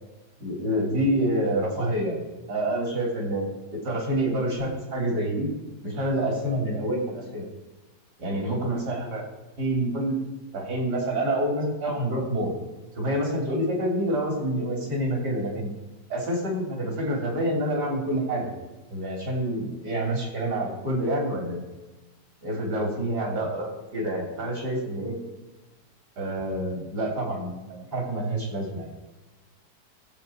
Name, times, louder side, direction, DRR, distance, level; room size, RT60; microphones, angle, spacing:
voice 1, 0.4-2.2 2.5-5.5 5.8-7.4 8.2-9.2 9.6-10.2 10.5-12.5 13.0-15.7 16.1-18.4 18.9-21.6 22.4-25.2 26.2-28.9, right 1 dB, 70° right, -1 dB, 4.0 m, -27 dB
19.5 x 8.4 x 4.6 m, 1.1 s
omnidirectional pair, 1.8 m